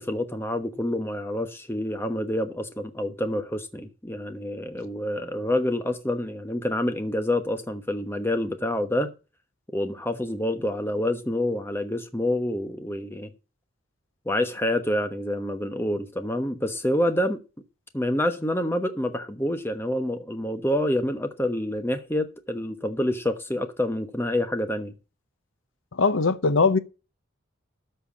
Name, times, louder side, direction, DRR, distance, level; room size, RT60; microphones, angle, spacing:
voice 1, 0.0-9.1 9.7-13.3 14.3-17.4 17.9-24.9, left 1 dB, 10° left, 1.0 m, -27 dB
voice 2, 25.9-26.8, left 4 dB, 80° left, 0.8 m, -20 dB
13.0 x 4.6 x 7.2 m
head